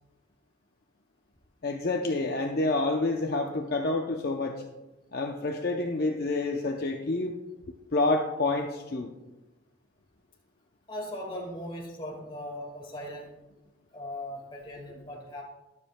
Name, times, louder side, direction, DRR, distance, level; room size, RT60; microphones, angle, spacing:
voice 1, 1.6-4.6 5.1-7.3 7.9-9.1, left 2 dB, 50° left, 2 dB, 0.6 m, -28 dB
voice 2, 10.9-13.4 13.9-15.4, left 1 dB, 25° left, -1 dB, 1.8 m, -39 dB
22.0 x 7.3 x 2.2 m, 1.1 s
head